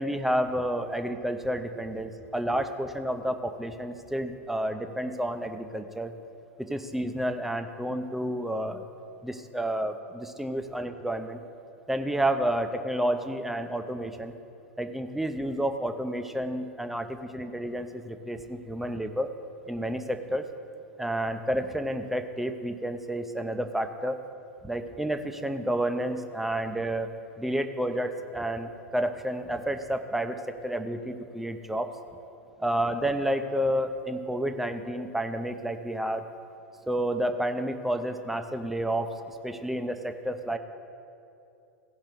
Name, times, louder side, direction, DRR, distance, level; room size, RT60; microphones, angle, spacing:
voice 1, 0.0-6.1 6.6-8.8 9.2-11.4 11.9-14.3 14.8-19.3 19.7-20.5 21.0-24.2 24.6-27.1 27.4-31.9 32.6-36.3 36.9-40.6, right 1 dB, 5° right, 7 dB, 0.5 m, -30 dB
16.0 x 5.5 x 5.1 m, 2.7 s
figure-of-eight pair, 90°, 8 cm